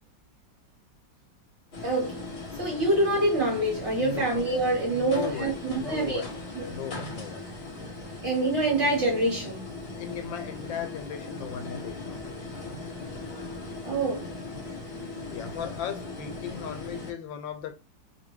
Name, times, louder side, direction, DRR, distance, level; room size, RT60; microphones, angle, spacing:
sound 1, 1.7-17.1, left 2 dB, 45° left, 1.0 m, -39 dB
voice 1, 1.8-2.2 2.6-6.2 6.5-6.7 8.2-9.7 13.8-14.3, right 1 dB, 45° right, 1.2 m, -26 dB
voice 2, 4.9-6.4 6.7-7.5 10.0-12.5 15.3-17.8, left 8 dB, 85° left, 1.3 m, -37 dB
2.8 x 2.7 x 3.1 m
omnidirectional pair, 2.0 m